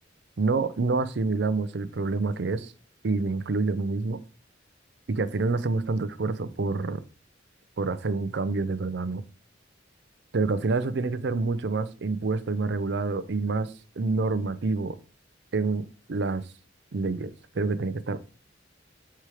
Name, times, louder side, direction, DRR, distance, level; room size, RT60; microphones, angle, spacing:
voice 1, 0.4-2.7 3.0-4.2 5.1-7.0 7.8-9.2 10.3-13.7 14.0-15.0 15.5-16.4 16.9-17.3 17.5-18.3, right 3 dB, 65° right, 0.5 m, -27 dB
4.8 x 4.5 x 4.8 m
head